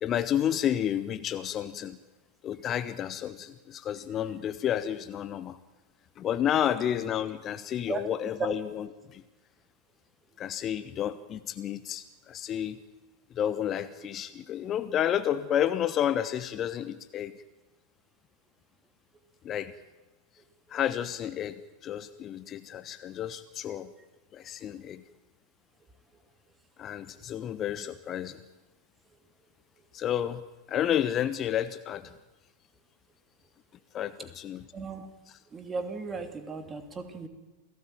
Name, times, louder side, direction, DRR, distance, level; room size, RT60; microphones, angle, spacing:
voice 1, 0.0-2.0 2.4-5.6 6.2-9.2 10.4-12.8 13.3-17.3 19.4-19.7 20.7-23.9 24.3-25.0 26.8-28.4 29.9-30.4 30.7-32.2 33.9-34.6, left 10 dB, 30° left, 13 dB, 1.0 m, -31 dB
voice 2, 34.7-35.1 35.5-37.3, right 4 dB, 20° right, 7 dB, 2.9 m, -35 dB
28.5 x 18.0 x 9.2 m, 1.2 s
figure-of-eight pair, 90°, 0 cm